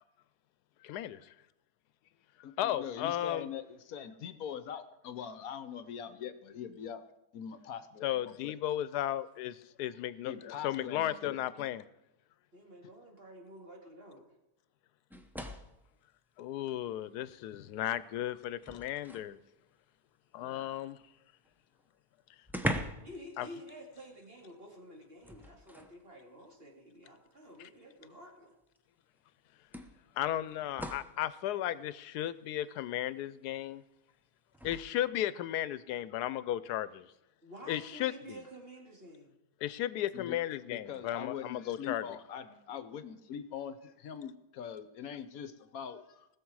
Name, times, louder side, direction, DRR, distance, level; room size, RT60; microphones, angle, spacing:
voice 1, 0.8-1.2 2.6-3.5 8.0-11.8 16.4-19.4 20.3-21.0 23.4-23.5 30.2-33.8 34.6-37.0 37.7-38.1 39.6-42.0, left 12 dB, 90° left, 16 dB, 1.1 m, -35 dB
voice 2, 2.4-7.0 7.3-8.6 10.3-11.4 18.7-18.9 20.4-20.7 40.1-46.3, left 8 dB, 70° left, 11 dB, 1.2 m, -43 dB
voice 3, 12.5-14.2 23.0-28.5 37.4-39.3, equal, 40° right, 0 dB, 2.5 m, -50 dB
sound 1, 15.1-15.8 17.2-17.3 17.8-19.4 21.4-21.5 21.8-21.9 22.4-23.2 23.5-23.7 25.2-26.0 27.1-27.2 28.7-28.8 29.7-31.2 34.5-34.8, equal, ahead, 0.4 m, -40 dB
19.5 x 7.0 x 4.7 m, 0.90 s
omnidirectional pair, 1.6 m